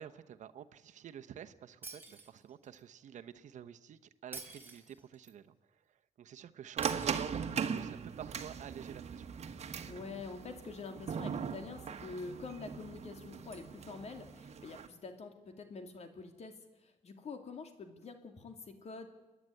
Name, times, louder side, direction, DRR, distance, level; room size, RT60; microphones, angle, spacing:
voice 1, 0.0-5.6 5.9-9.3, right 9 dB, 75° right, 10 dB, 0.9 m, -49 dB
Shatter, 1.8-2.8 4.3-5.3 6.8-7.8, right 2 dB, 15° right, 3.4 m, -49 dB
sound 1, 6.8-14.9, right 7 dB, 60° right, 1.4 m, -39 dB
voice 2, 9.9-19.1, left 4 dB, 60° left, 6 dB, 2.7 m, -46 dB
29.0 x 10.5 x 9.7 m, 1.1 s
cardioid pair, 95°, 12 cm